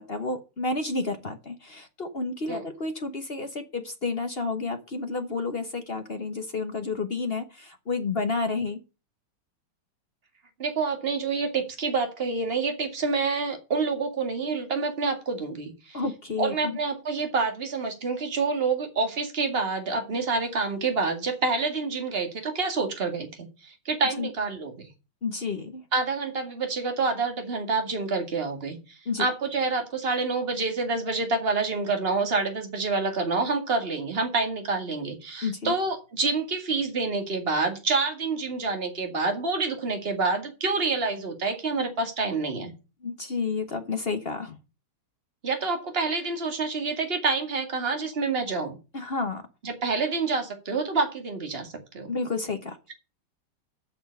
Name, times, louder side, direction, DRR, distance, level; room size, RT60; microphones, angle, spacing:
voice 1, 0.0-8.8 15.9-16.8 24.2-24.3 25.2-25.8 29.1-29.3 35.4-35.7 43.0-44.6 48.9-49.4 52.1-52.8, left 4 dB, 40° left, 0.9 m, -30 dB
voice 2, 10.6-16.0 16.4-24.9 25.9-28.8 29.2-42.7 45.4-48.8 49.6-52.1, right 4 dB, 25° right, 2.2 m, -27 dB
8.5 x 6.2 x 8.0 m
omnidirectional pair, 2.4 m